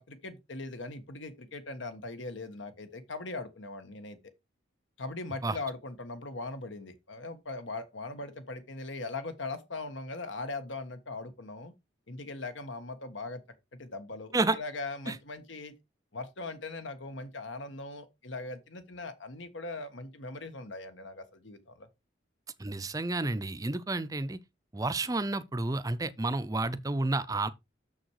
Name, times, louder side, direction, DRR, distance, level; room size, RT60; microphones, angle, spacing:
voice 1, 0.0-4.2 5.0-11.7 12.1-13.4 13.7-15.7 16.1-21.9, left 3 dB, 80° left, 1.5 m, -40 dB
voice 2, 22.6-24.4 24.7-27.5, right 2 dB, 20° right, 0.5 m, -30 dB
6.9 x 6.4 x 4.7 m
head